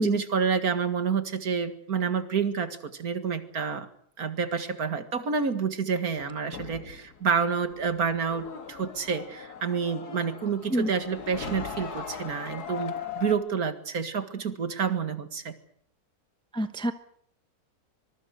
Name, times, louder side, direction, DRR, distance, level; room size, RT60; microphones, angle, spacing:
voice 1, 0.0-3.9 4.2-15.5, right 6 dB, 70° right, 10 dB, 2.3 m, -29 dB
sound 1, 6.1-13.3, left 7 dB, 85° left, 2.2 m, -40 dB
voice 2, 16.5-16.9, equal, 5° left, 10 dB, 0.9 m, -26 dB
25.0 x 22.0 x 6.6 m, 0.64 s
omnidirectional pair, 1.6 m